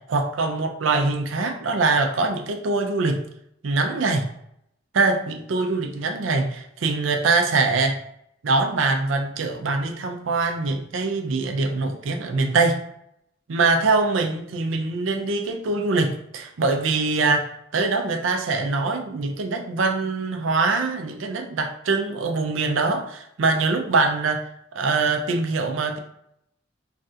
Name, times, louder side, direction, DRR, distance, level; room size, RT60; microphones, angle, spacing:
voice 1, 0.1-3.2 3.6-4.3 4.9-8.0 8.4-12.8 13.5-24.4 24.7-26.0, right 3 dB, 90° right, 4 dB, 0.5 m, -23 dB
3.2 x 2.4 x 2.7 m, 0.74 s
head